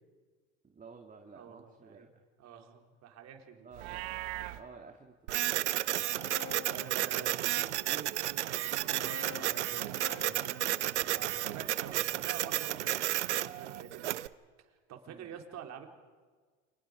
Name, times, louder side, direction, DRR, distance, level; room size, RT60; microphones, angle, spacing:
voice 1, 0.6-2.2 3.6-5.9 11.5-11.8 15.1-15.4, right 4 dB, 25° right, 3 dB, 2.2 m, -53 dB
voice 2, 1.3-2.1 2.4-3.7 6.4-10.6 10.9-14.2 14.6-15.9, right 8 dB, 50° right, 4 dB, 3.7 m, -48 dB
Livestock farm animals working animals, 3.7-4.6, right 17 dB, 70° right, 1.4 m, -39 dB
Printer, 5.3-14.3, right 14 dB, 85° right, 0.7 m, -32 dB
sound 1, 6.0-7.8 8.6-12.7, left 9 dB, 40° left, 1.0 m, -51 dB
29.5 x 26.5 x 5.1 m, 1.5 s
hypercardioid pair, 75°, 34 cm